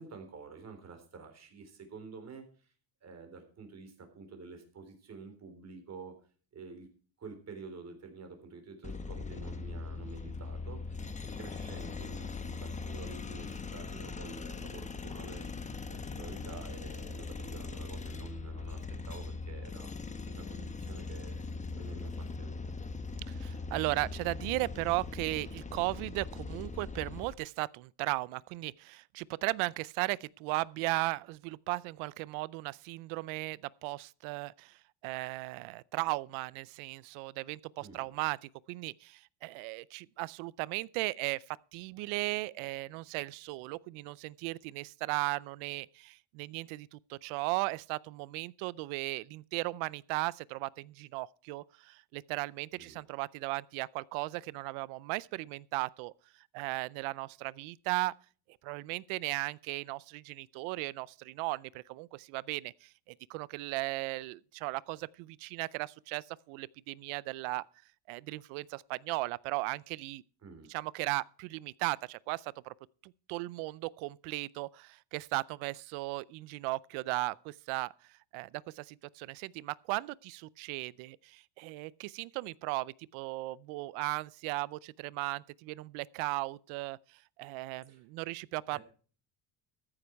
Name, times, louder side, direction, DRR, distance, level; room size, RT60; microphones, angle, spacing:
voice 1, 0.0-2.7 3.0-6.1 6.5-6.9 7.2-11.0 11.4-15.5 15.9-19.9 20.2-21.5 21.7-22.6 37.8-38.1 52.8-53.0 70.4-70.7 87.8-88.0 88.7-88.8, right 4 dB, 35° right, 3.8 m, -49 dB
sound 1, 8.8-27.3, left 4 dB, 15° left, 0.9 m, -40 dB
voice 2, 23.3-56.1 56.5-58.1 58.6-67.6 68.1-70.2 70.7-72.7 73.0-77.9 78.3-87.0 87.4-88.8, right 22 dB, 90° right, 0.7 m, -36 dB
14.0 x 9.9 x 4.5 m
cardioid pair, 135°, 47 cm